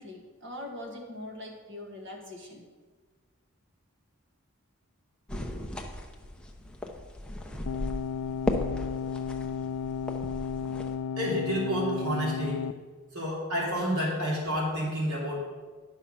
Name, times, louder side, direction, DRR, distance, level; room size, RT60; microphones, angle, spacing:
voice 1, 0.0-2.6, left 1 dB, 55° right, 1 dB, 1.7 m, -42 dB
sound 1, 5.3-11.0, left 1 dB, 5° left, 0.7 m, -36 dB
sound 2, 7.7-12.7, left 6 dB, 80° left, 0.3 m, -33 dB
voice 2, 11.2-12.6 13.1-15.3, equal, 75° right, -4 dB, 3.2 m, -29 dB
10.5 x 6.3 x 5.6 m, 1.4 s
head